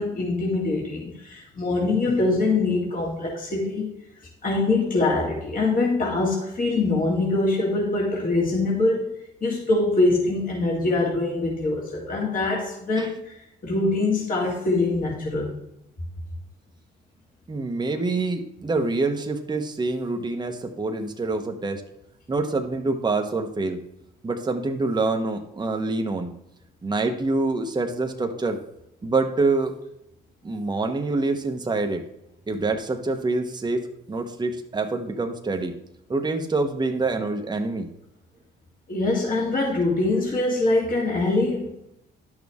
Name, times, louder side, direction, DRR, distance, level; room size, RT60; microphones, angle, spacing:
voice 1, 0.0-3.9 4.4-9.1 9.4-15.5 38.9-41.7, left 2 dB, 45° left, -3 dB, 2.2 m, -23 dB
voice 2, 17.5-21.8 22.3-23.8 24.2-26.3 26.8-28.6 29.0-29.7 30.4-32.0 32.5-35.8 36.1-37.9, right 3 dB, 20° right, 4 dB, 1.0 m, -26 dB
11.0 x 6.3 x 3.6 m, 0.80 s
cardioid pair, 90°, 20 cm